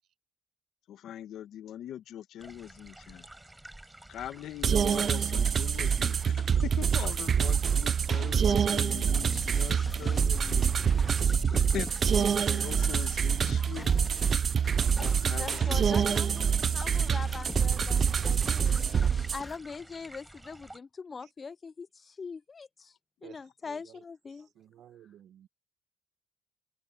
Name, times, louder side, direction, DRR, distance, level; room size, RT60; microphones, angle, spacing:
voice 1, 0.9-3.3 4.1-10.6 11.5-13.9 15.0-16.3, left 11 dB, 80° left, 2.0 m, -42 dB
sound 1, 2.4-20.8, right 1 dB, 10° right, 4.4 m, -50 dB
sound 2, 4.6-19.4, right 7 dB, 50° right, 0.4 m, -26 dB
sound 3, 9.2-19.6, left 2 dB, 20° left, 2.6 m, -42 dB
voice 2, 15.4-18.9 19.3-22.9 23.2-24.5, left 5 dB, 35° left, 0.5 m, -42 dB
voice 3, 18.2-19.1 21.2-21.3 23.2-24.0 24.3-25.5, right 11 dB, 80° right, 1.4 m, -55 dB
open air
cardioid pair, 90°, 0 cm